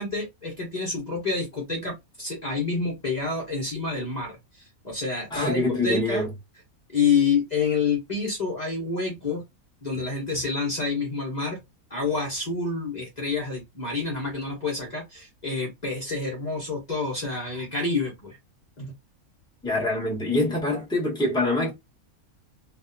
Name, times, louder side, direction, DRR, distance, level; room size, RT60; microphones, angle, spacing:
voice 1, 0.0-6.2 6.9-9.4 9.8-11.6 11.9-18.4 18.8-18.9, left 4 dB, 30° left, 1.3 m, -28 dB
voice 2, 5.3-6.3 19.6-21.7, left 2 dB, 5° left, 1.2 m, -25 dB
3.3 x 2.6 x 2.7 m
omnidirectional pair, 1.5 m